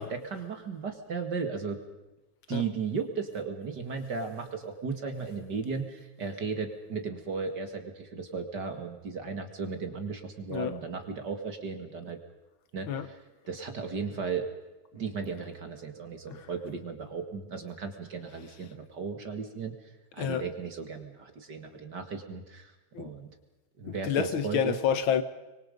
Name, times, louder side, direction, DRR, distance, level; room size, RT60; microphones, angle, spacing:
voice 1, 0.0-1.8 2.5-12.2 12.7-13.2 13.5-14.5 14.9-19.8 20.1-22.7 23.0-23.3 23.8-24.8, right 5 dB, 40° right, 2.1 m, -35 dB
voice 2, 23.9-25.2, left 8 dB, 65° left, 1.2 m, -28 dB
25.0 x 24.0 x 5.3 m
omnidirectional pair, 3.6 m